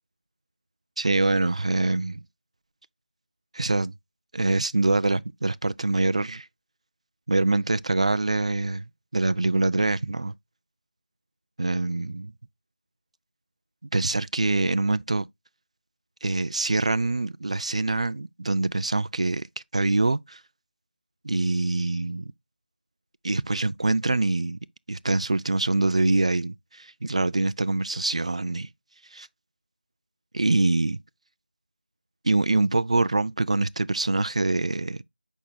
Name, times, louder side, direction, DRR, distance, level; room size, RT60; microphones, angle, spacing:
voice 1, 1.0-2.2 3.5-3.9 4.3-6.5 7.3-8.8 9.1-10.3 11.6-12.3 13.9-15.3 16.2-19.5 19.7-20.4 21.2-22.3 23.2-24.6 24.9-28.7 29.1-29.3 30.3-31.0 32.2-35.0, right 2 dB, 40° right, 0.4 m, -24 dB
8.5 x 5.4 x 2.6 m
figure-of-eight pair, 170°, 5 cm